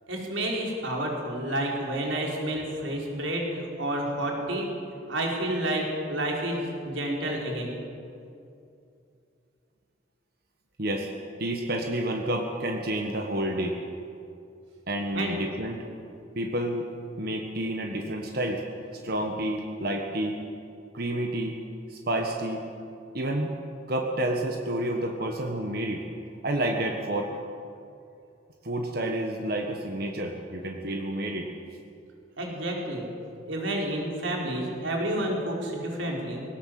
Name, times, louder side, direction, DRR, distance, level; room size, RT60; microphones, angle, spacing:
voice 1, 0.1-4.7 5.1-7.8 15.1-15.4 32.4-33.1 33.4-36.4, right 1 dB, 85° right, -1 dB, 4.6 m, -30 dB
voice 2, 10.8-11.1 11.4-13.8 14.9-15.8 16.3-16.8 17.2-18.6 19.0-20.3 20.9-21.5 21.9-22.6 23.1-23.5 23.9-26.1 26.4-27.3 28.6-31.5, right 1 dB, 55° right, 2 dB, 1.5 m, -29 dB
20.5 x 18.0 x 7.7 m, 2.6 s
head